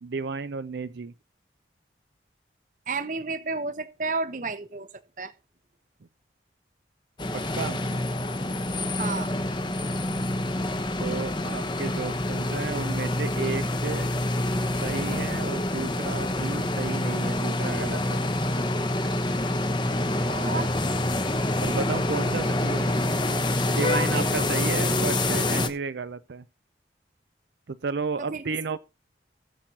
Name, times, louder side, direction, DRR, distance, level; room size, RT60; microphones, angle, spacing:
voice 1, 0.0-1.1 7.3-8.0 11.0-14.1 14.8-18.2 21.6-22.9 23.7-26.4 27.7-28.8, right 4 dB, 75° right, 0.5 m, -33 dB
voice 2, 2.9-4.9 5.2-5.3 9.0-9.4 19.8-19.9 20.2-20.7 24.1-24.5 28.2-28.4, right 3 dB, 45° right, 0.8 m, -32 dB
sound 1, 7.2-25.7, left 1 dB, 25° left, 0.9 m, -27 dB
17.5 x 7.5 x 2.8 m
head